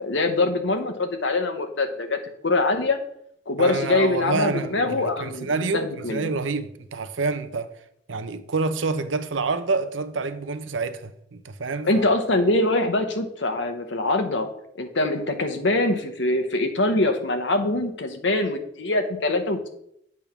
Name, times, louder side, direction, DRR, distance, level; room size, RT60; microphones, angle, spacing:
voice 1, 0.0-2.2 2.4-3.0 3.5-6.3 11.8-14.5 14.8-19.7, left 2 dB, 70° left, 1.0 m, -23 dB
voice 2, 3.6-7.7 8.1-12.1, right 3 dB, 85° right, 0.7 m, -27 dB
8.5 x 3.5 x 5.9 m
head